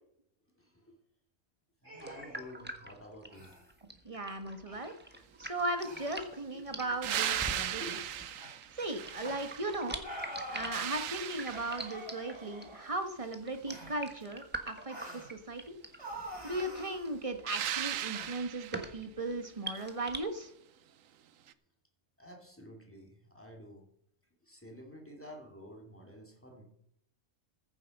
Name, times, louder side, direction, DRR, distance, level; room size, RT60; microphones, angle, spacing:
voice 1, 0.6-0.9 1.8-3.6 6.5-6.9 7.8-7.9 19.3-19.5 22.2-23.8 24.4-26.6, left 1 dB, 10° left, 1 dB, 2.8 m, -51 dB
sound 1, 1.8-2.5 3.3-3.6 4.3-4.4 4.7-4.9 5.8-6.3 7.3-7.4 8.4-8.5 9.2-9.4 10.0-10.8 11.5-13.0 13.7-14.0 14.9-15.3 16.0-17.0 18.1-18.3, right 1 dB, 55° right, 4.0 m, -46 dB
sound 2, 2.0-20.2, right 1 dB, 10° right, 1.3 m, -45 dB
voice 2, 4.0-4.9 5.4-8.0 8.7-10.0 10.5-15.8 16.4-20.5, right 2 dB, 25° right, 7 dB, 1.4 m, -37 dB
sound 3, 7.0-9.9 10.3-12.1 17.5-18.9 21.5-21.6, right 11 dB, 75° right, 1.1 m, -37 dB
15.0 x 8.0 x 5.4 m, 0.71 s
omnidirectional pair, 1.4 m